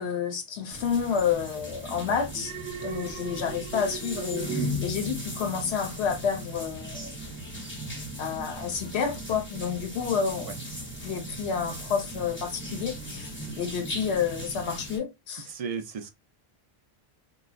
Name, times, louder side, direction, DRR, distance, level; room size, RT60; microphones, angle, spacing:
voice 1, 0.0-2.5 2.8-7.1 8.2-10.5 11.0-13.3 13.6-15.5, left 7 dB, 85° left, 0.8 m, -29 dB
sound 1, 0.7-15.0, equal, 15° left, 0.7 m, -37 dB
Alarm, 2.3-5.7 6.0-6.4, right 8 dB, 90° right, 1.0 m, -39 dB
voice 2, 15.5-16.1, right 6 dB, 55° right, 0.4 m, -34 dB
3.0 x 2.1 x 2.3 m
omnidirectional pair, 1.1 m